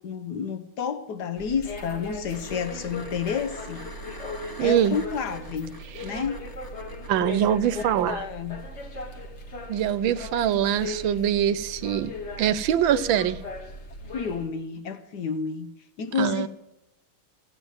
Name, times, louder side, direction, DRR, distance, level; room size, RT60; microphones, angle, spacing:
voice 1, 0.0-3.8 4.6-5.7 6.0-6.4 7.5-8.6 14.1-15.7 16.0-16.5, left 6 dB, 65° left, 10 dB, 1.3 m, -30 dB
sound 1, 1.4-14.5, left 2 dB, 40° left, 1.3 m, -38 dB
sound 2, 2.3-7.8 10.5-10.6, left 1 dB, 15° left, 1.1 m, -45 dB
voice 2, 4.6-5.0 7.1-8.2 9.7-13.4 16.2-16.5, right 10 dB, 80° right, 15 dB, 1.4 m, -23 dB
15.0 x 9.3 x 7.9 m, 0.92 s
omnidirectional pair, 2.1 m